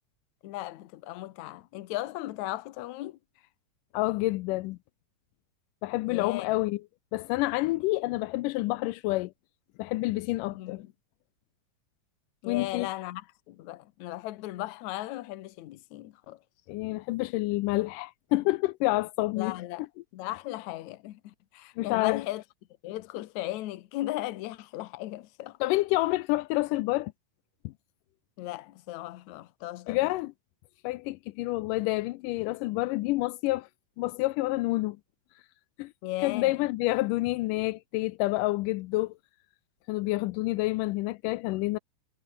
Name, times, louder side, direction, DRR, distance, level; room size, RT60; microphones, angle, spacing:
voice 1, 0.4-3.2 6.1-6.5 10.5-10.9 12.4-16.4 19.4-19.9 20.1-22.4 22.8-25.6 28.4-30.1 36.0-36.6, left 16 dB, 70° left, 2.2 m, -37 dB
voice 2, 3.9-4.8 5.8-6.8 7.1-9.3 9.8-10.8 12.5-12.9 16.7-19.6 21.8-22.2 25.6-27.1 27.6-27.7 29.9-30.3 30.8-33.7 34.0-35.0 35.8-35.9 36.2-39.1 39.9-41.8, left 19 dB, 85° left, 2.2 m, -28 dB
omnidirectional pair, 3.7 m